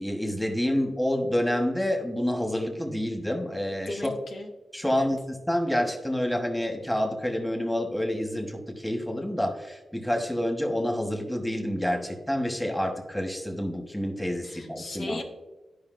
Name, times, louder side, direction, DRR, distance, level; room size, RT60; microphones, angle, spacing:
voice 1, 0.0-4.0 4.7-15.2, equal, 5° left, 3 dB, 1.2 m, -28 dB
voice 2, 3.9-4.5 4.9-5.1 14.4-15.2, left 2 dB, 70° left, 2 dB, 0.8 m, -37 dB
11.0 x 5.1 x 2.5 m, 1.1 s
cardioid pair, 60°, 0 cm